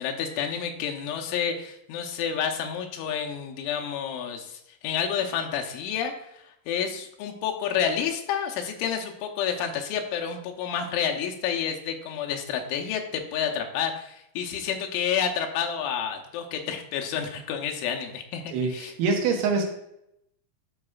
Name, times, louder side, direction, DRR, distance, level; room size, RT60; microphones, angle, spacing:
voice 1, 0.0-18.9, left 8 dB, 85° left, 3 dB, 3.2 m, -29 dB
voice 2, 18.5-19.6, right 4 dB, 85° right, 1 dB, 3.7 m, -25 dB
12.5 x 5.3 x 2.4 m, 0.78 s
omnidirectional pair, 5.4 m